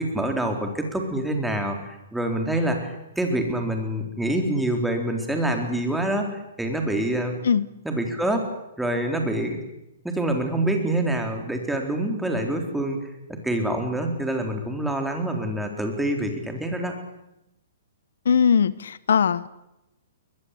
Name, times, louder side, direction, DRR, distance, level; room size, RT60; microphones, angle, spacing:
voice 1, 0.0-7.3 7.8-8.4 8.8-9.6 10.0-16.9, right 1 dB, 5° right, 3 dB, 3.9 m, -26 dB
voice 2, 18.2-19.5, left 7 dB, 75° left, 18 dB, 0.9 m, -20 dB
22.5 x 21.5 x 8.5 m, 0.87 s
hypercardioid pair, 145°, 0 cm